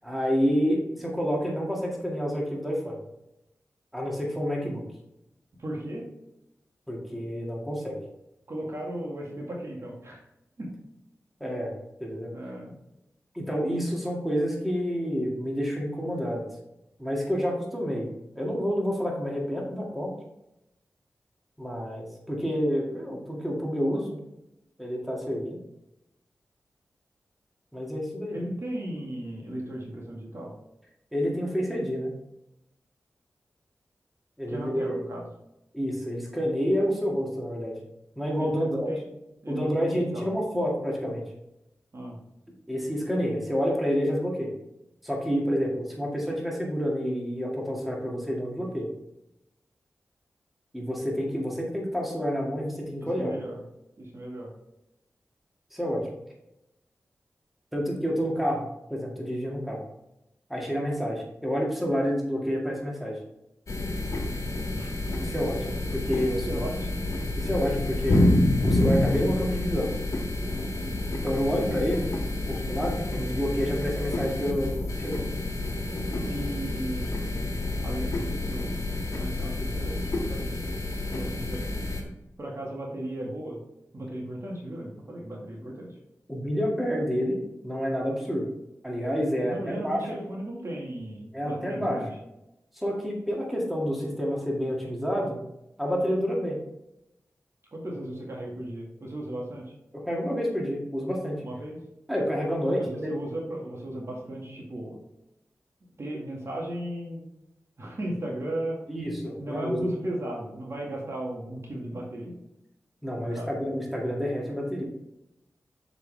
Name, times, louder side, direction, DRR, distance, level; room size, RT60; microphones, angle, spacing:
voice 1, 0.0-3.0 3.9-4.8 6.9-8.0 11.4-11.7 12.0-12.3 13.3-16.4 17.0-18.1 18.3-20.1 21.6-24.1 24.8-25.6 27.7-28.4 31.1-32.1 34.4-35.0 35.7-37.7 38.2-38.9 39.5-41.2 42.7-44.5 45.0-48.9 50.7-53.3 55.7-56.0 57.7-58.6 58.9-59.8 60.5-63.2 65.2-66.7 67.3-68.2 68.6-69.9 71.2-72.1 72.5-74.7 75.0-75.2 86.3-88.5 88.8-90.2 91.3-92.0 92.8-95.4 95.8-96.6 100.0-101.4 102.1-103.1 108.9-109.9 113.0-114.8, equal, ahead, -2 dB, 2.0 m, -28 dB
voice 2, 5.6-6.1 8.5-10.2 10.6-10.7 12.3-12.8 28.3-30.5 34.5-35.2 38.4-39.0 39.4-40.3 41.9-42.2 53.1-53.6 54.0-54.5 64.7-64.9 66.5-67.0 68.1-68.3 76.3-77.2 77.8-78.8 79.2-80.6 81.1-81.7 82.4-83.6 83.9-85.9 89.4-92.0 97.7-99.7 101.4-101.8 102.6-105.0 106.0-107.2 107.8-108.8 109.4-112.3 113.2-113.5, right 1 dB, 55° right, -2 dB, 1.9 m, -36 dB
sound 1, 63.7-82.0, left 1 dB, 70° left, 1.3 m, -28 dB
6.7 x 5.0 x 3.4 m, 0.87 s
cardioid pair, 45°, 5 cm